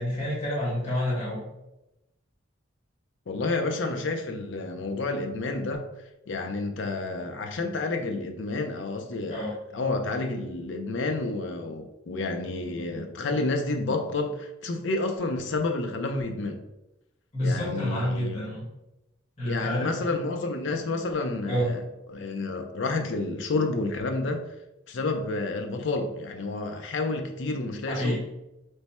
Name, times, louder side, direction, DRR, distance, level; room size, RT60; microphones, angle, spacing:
voice 1, 0.0-1.4 9.3-9.5 17.3-18.6 19.4-19.9 21.5-21.7 27.9-28.2, equal, 30° left, -6 dB, 1.1 m, -28 dB
voice 2, 3.3-5.8 6.3-9.5 9.7-16.6 17.4-18.4 19.4-21.8 22.1-24.4 24.9-28.2, left 3 dB, 65° left, 5 dB, 0.5 m, -30 dB
3.3 x 2.1 x 4.1 m, 0.91 s
head